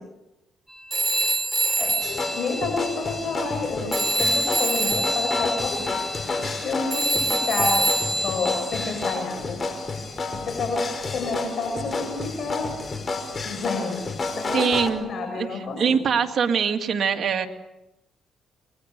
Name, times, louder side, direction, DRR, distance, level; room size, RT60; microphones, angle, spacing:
Telephone, 0.9-3.6 3.9-9.2, right 2 dB, 10° right, 6.9 m, -26 dB
voice 1, 1.2-5.9 6.2-9.6 10.3-12.8 13.5-16.0, left 3 dB, 55° left, 3 dB, 7.4 m, -30 dB
sound 1, 2.0-14.9, left 3 dB, 35° left, 5.4 m, -31 dB
voice 2, 14.5-15.5 15.8-17.5, right 6 dB, 55° right, 4 dB, 2.3 m, -23 dB
29.0 x 22.5 x 6.9 m, 0.92 s
cardioid pair, 90°, 0 cm